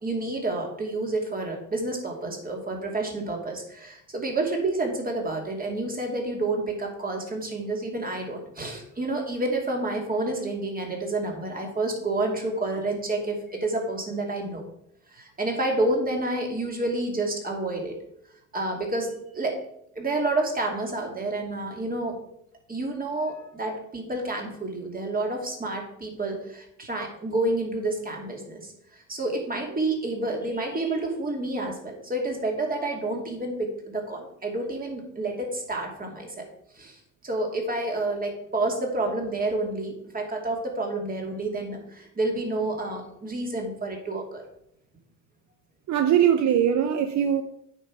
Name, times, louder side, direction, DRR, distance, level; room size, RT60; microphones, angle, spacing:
voice 1, 0.0-14.6 15.1-18.0 18.5-19.6 19.9-22.2 22.7-36.5 36.7-44.4, right 2 dB, 30° right, 1 dB, 2.6 m, -29 dB
voice 2, 45.9-47.4, right 9 dB, 65° right, 8 dB, 0.7 m, -21 dB
8.7 x 5.5 x 4.8 m, 0.74 s
cardioid pair, 90°, 30 cm